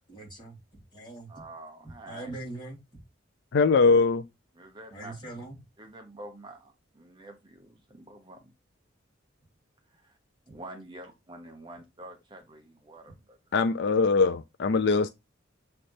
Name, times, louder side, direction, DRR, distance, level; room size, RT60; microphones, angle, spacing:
voice 1, 0.1-0.6 0.9-1.3 2.1-2.8 4.9-5.6, right 2 dB, 25° left, 3.3 m, -41 dB
voice 2, 1.3-2.3 4.5-5.2 5.8-8.4 9.9-10.1 10.5-13.4, right 2 dB, 25° right, 1.1 m, -47 dB
voice 3, 3.5-4.2 13.5-15.1, left 4 dB, 60° left, 0.4 m, -22 dB
7.5 x 3.3 x 4.3 m
head